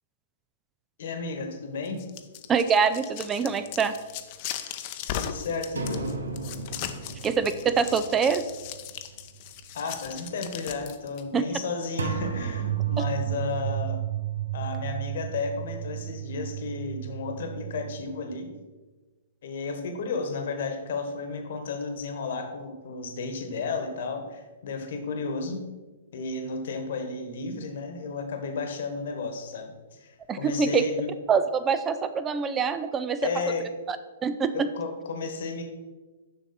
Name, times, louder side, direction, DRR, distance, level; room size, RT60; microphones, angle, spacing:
voice 1, 1.0-2.0 4.5-4.7 5.0-6.1 9.7-14.0 14.5-18.5 19.4-25.6 26.1-31.1 33.2-33.7 34.5-35.6, left 4 dB, 65° left, 6 dB, 1.2 m, -33 dB
sound 1, 1.9-11.2, left 10 dB, 45° left, 0.6 m, -38 dB
voice 2, 2.5-3.9 7.2-8.4 11.3-11.4 30.3-30.8 31.3-33.3 33.9-34.0 34.2-34.7, right 6 dB, 20° right, 12 dB, 0.4 m, -24 dB
sound 2, 5.8-8.9 9.2-9.4 12.0-18.0, right 8 dB, 85° right, 0.9 m, -32 dB
6.8 x 5.8 x 4.3 m, 1.2 s
hypercardioid pair, 125°, 0 cm